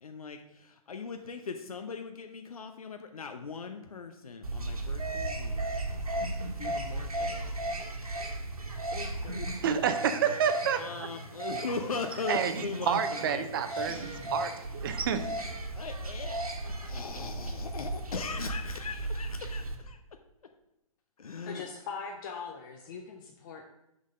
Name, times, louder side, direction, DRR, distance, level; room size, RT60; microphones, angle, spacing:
voice 1, 0.0-5.6 5.9-7.9 8.9-9.6 10.8-13.6 15.8-20.0 21.2-21.6, left 4 dB, 75° left, 6 dB, 0.7 m, -40 dB
sound 1, 4.4-19.7, right 2 dB, 80° right, 1.3 m, -35 dB
voice 2, 9.6-11.1 12.3-15.3, right 8 dB, 40° right, 9 dB, 0.6 m, -30 dB
sound 2, 13.6-15.7, left 1 dB, 55° left, 2.3 m, -47 dB
voice 3, 21.4-23.6, left 5 dB, 35° left, 2 dB, 0.6 m, -41 dB
6.2 x 4.0 x 6.3 m, 0.87 s
figure-of-eight pair, 125°, 19 cm